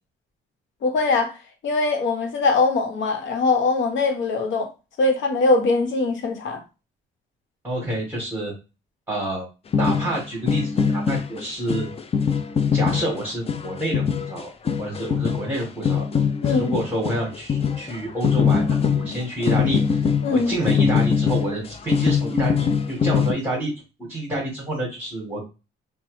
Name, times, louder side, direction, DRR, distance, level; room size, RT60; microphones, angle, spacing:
voice 1, 0.8-1.4 1.6-4.7 5.0-6.6 16.4-16.8 19.0-19.1 20.2-20.5, left 3 dB, 70° left, 0.9 m, -21 dB
voice 2, 7.6-8.5 9.1-9.5 9.8-11.9 12.7-14.5 14.8-16.0 16.5-20.0 20.3-23.7 24.1-25.4, right 1 dB, 10° right, 1.6 m, -28 dB
sound 1, 9.7-23.3, left 6 dB, 30° left, 0.4 m, -22 dB
2.9 x 2.0 x 3.1 m
cardioid pair, 90°, 20 cm